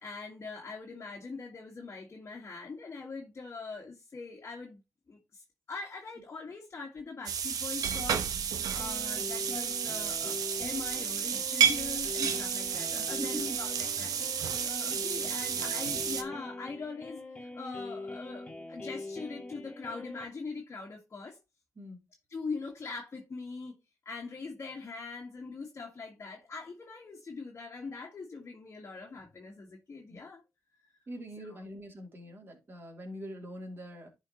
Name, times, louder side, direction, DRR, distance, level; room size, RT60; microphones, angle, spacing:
voice 1, 0.0-4.8 5.1-5.4 5.7-21.4 22.3-23.7 24.0-30.4 31.4-31.6, left 4 dB, 40° left, 1.6 m, -42 dB
sound 1, 7.3-16.2, right 8 dB, 85° right, 0.8 m, -31 dB
sound 2, 8.8-20.3, left 2 dB, 20° left, 1.4 m, -43 dB
voice 2, 13.2-13.6 15.2-15.4 21.8-22.0 30.1-30.2 31.1-34.1, right 1 dB, 35° right, 2.9 m, -43 dB
11.0 x 4.4 x 2.9 m
cardioid pair, 80°, 6 cm